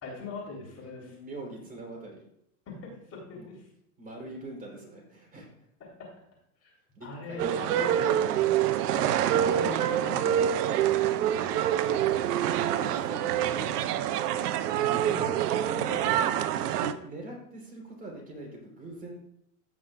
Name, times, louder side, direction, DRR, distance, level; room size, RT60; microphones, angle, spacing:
voice 1, 0.0-1.1 2.7-3.6 6.0-6.1 6.6-6.7 7.0-8.1 8.9-9.2 9.4-10.4 14.7-16.2, left 2 dB, 30° left, -3 dB, 3.9 m, -40 dB
voice 2, 1.1-2.2 3.3-3.5 4.0-5.5 7.0-8.4 11.0-11.5 11.9-12.0 12.4-13.9 16.7-19.2, right 2 dB, 15° right, -2 dB, 3.9 m, -43 dB
sound 1, 7.4-16.9, right 10 dB, 70° right, 0.8 m, -26 dB
16.0 x 5.9 x 2.5 m, 0.75 s
hypercardioid pair, 115°, 48 cm